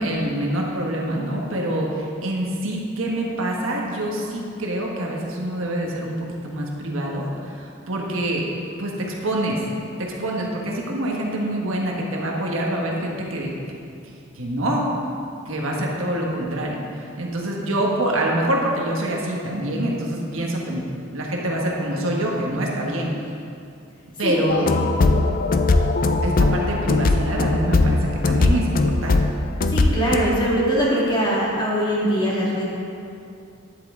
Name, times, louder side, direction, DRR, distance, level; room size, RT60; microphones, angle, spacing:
voice 1, 0.0-6.1 6.4-8.5 8.8-9.6 10.0-13.8 14.1-14.8 15.5-20.8 21.1-23.1 24.2-24.7 26.2-29.2, right 1 dB, 75° right, -1 dB, 1.3 m, -25 dB
sound 1, 24.5-30.2, left 3 dB, 45° left, 0.5 m, -19 dB
voice 2, 29.7-32.6, equal, 25° left, -6 dB, 1.9 m, -21 dB
10.5 x 8.1 x 3.7 m, 2.5 s
head